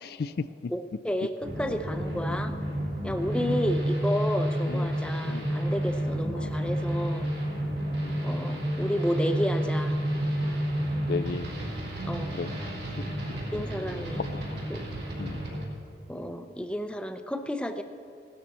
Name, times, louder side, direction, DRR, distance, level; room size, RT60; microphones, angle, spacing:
voice 1, 0.0-0.7 2.3-2.4 3.3-3.6 4.7-5.0 5.2-5.6 6.3-6.5 8.0-8.3 11.1-11.5 12.3-12.5 14.2-14.6 15.2-15.4, left 4 dB, 60° left, 13 dB, 0.4 m, -35 dB
voice 2, 0.7-1.3 1.6-2.5 3.0-7.3 8.2-10.0 12.1-12.3 13.5-14.2 14.7-14.8 16.1-17.8, equal, 5° left, 7 dB, 0.6 m, -31 dB
sound 1, 1.4-15.6, equal, 70° right, 4.0 m, -30 dB
17.0 x 13.0 x 4.3 m, 2.8 s
head